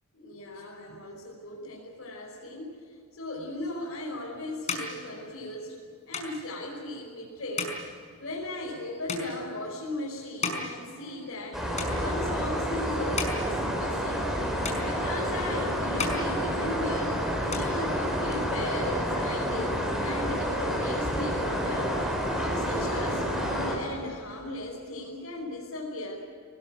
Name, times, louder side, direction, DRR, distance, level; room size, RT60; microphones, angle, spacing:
voice 1, 0.1-2.7 3.2-5.7 6.1-7.8 8.2-11.7 11.9-13.5 13.7-14.2 14.8-17.1 17.4-19.7 20.0-22.0 22.3-26.2, left 1 dB, 65° left, -4 dB, 5.3 m, -37 dB
sound 1, 3.8-11.5 11.7-12.5 12.9-14.4 14.6-15.5 15.8-17.1 17.3-18.4, left 4 dB, 35° left, 5.0 m, -37 dB
sound 2, 11.5-23.8, equal, ahead, 6.0 m, -29 dB
25.5 x 19.5 x 9.2 m, 2.4 s
head